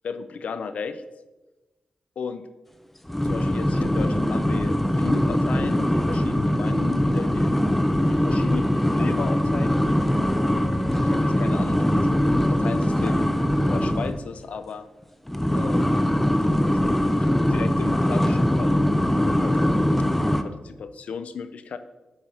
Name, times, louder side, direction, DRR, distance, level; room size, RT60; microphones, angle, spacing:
voice 1, 0.0-1.0 2.2-2.5 3.2-7.6 8.1-9.8 11.0-14.8 15.5-15.9 16.7-16.8 17.1-19.6 19.8-20.1 20.4-21.8, left 5 dB, 75° left, 11 dB, 0.6 m, -35 dB
sound 1, 3.1-14.2 15.3-20.4, left 1 dB, 5° left, 0.6 m, -22 dB
Bowed string instrument, 7.7-13.2, right 1 dB, 20° right, 1.8 m, -42 dB
8.3 x 6.0 x 4.8 m, 1.1 s
wide cardioid pair, 110°, 2 cm